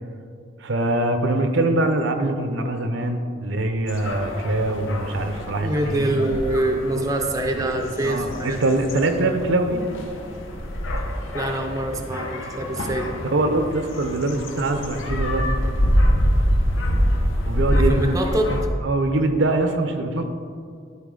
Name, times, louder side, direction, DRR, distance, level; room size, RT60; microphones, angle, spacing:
voice 1, 0.6-6.2 7.6-9.8 13.2-15.5 17.5-18.1 18.5-20.3, right 2 dB, 65° right, 7 dB, 0.6 m, -23 dB
sound 1, 3.9-18.7, equal, 75° left, 0.8 m, -25 dB
voice 2, 5.6-8.6 11.3-13.2 17.7-18.5, right 1 dB, 15° right, 2 dB, 0.5 m, -25 dB
12.0 x 4.6 x 3.8 m, 2.3 s
head